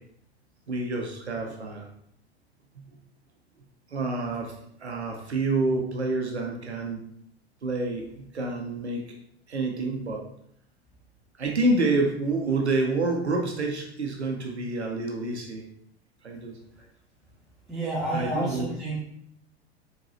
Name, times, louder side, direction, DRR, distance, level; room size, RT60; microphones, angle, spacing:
voice 1, 0.7-1.9 2.8-2.9 3.9-7.0 7.6-9.1 9.5-10.2 11.4-15.6 16.2-16.6 18.1-18.7, right 2 dB, 80° right, 1 dB, 0.9 m, -28 dB
voice 2, 17.7-18.9, right 2 dB, ahead, -9 dB, 1.4 m, -29 dB
4.7 x 3.7 x 2.8 m, 0.71 s
figure-of-eight pair, 95°, 33 cm